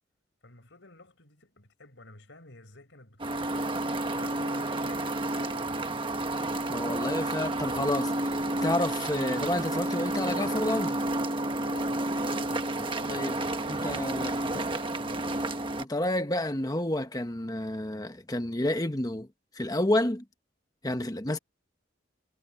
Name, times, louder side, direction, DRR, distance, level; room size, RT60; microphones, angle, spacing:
voice 1, 0.4-3.8 4.1-6.4 11.6-15.6, left 2 dB, 65° left, 5.2 m, -52 dB
sound 1, 3.2-15.8, right 1 dB, 25° right, 1.3 m, -30 dB
voice 2, 6.7-11.0 13.1-13.4 13.7-14.4 15.8-19.3 19.5-20.2 20.8-21.4, left 1 dB, 20° left, 1.1 m, -30 dB
head